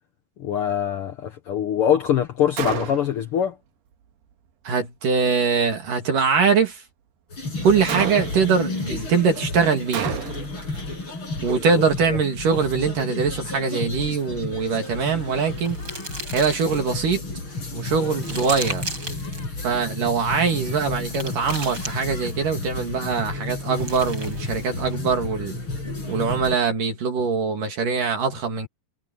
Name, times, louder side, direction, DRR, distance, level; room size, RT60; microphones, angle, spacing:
voice 1, 0.4-3.5 11.7-12.2, left 9 dB, 70° left, 1.3 m, -23 dB
Gunshot gunfire, 2.6-3.3 7.9-8.6 9.9-10.6, right 10 dB, 90° right, 3.8 m, -30 dB
voice 2, 4.7-6.8 7.6-10.2 11.4-15.8 16.3-17.2 17.7-18.8 19.6-25.6 26.1-28.7, right 5 dB, 60° right, 3.9 m, -22 dB
sound 1, 7.3-26.6, left 2 dB, 30° left, 6.9 m, -32 dB
sound 2, 14.7-16.9 17.5-19.4 20.3-22.5 23.5-25.0, right 2 dB, 25° right, 7.8 m, -37 dB
omnidirectional pair, 4.4 m